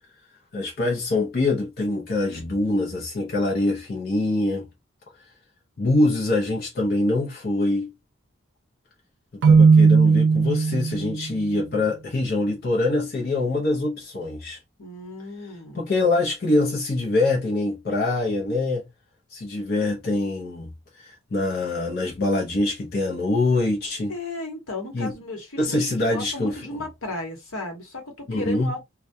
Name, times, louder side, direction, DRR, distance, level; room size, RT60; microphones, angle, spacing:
voice 1, 0.5-4.7 5.8-7.9 9.3-14.6 15.7-18.8 19.3-24.2 24.9-25.1 25.6-26.6 28.3-28.7, left 2 dB, 50° left, 0.6 m, -24 dB
Keyboard (musical), 9.4-11.3, right 5 dB, 55° right, 0.3 m, -16 dB
voice 2, 14.8-15.8 24.1-28.8, left 2 dB, 75° left, 1.0 m, -35 dB
2.2 x 2.2 x 2.6 m
head